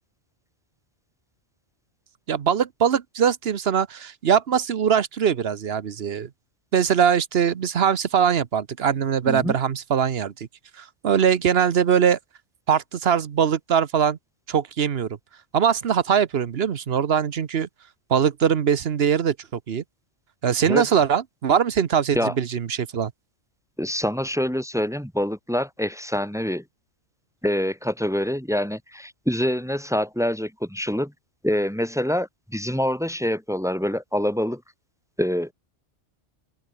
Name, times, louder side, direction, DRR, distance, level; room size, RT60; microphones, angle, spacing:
voice 1, 2.3-6.3 6.7-10.5 10.8-12.2 12.7-14.2 14.5-15.1 15.5-17.7 18.1-19.3 19.7-19.8 20.4-23.1, right 7 dB, 60° right, 1.1 m, -22 dB
voice 2, 23.8-26.6 27.4-31.1 31.4-34.6 35.2-35.5, equal, ahead, 3.5 m, -25 dB
omnidirectional pair, 1.2 m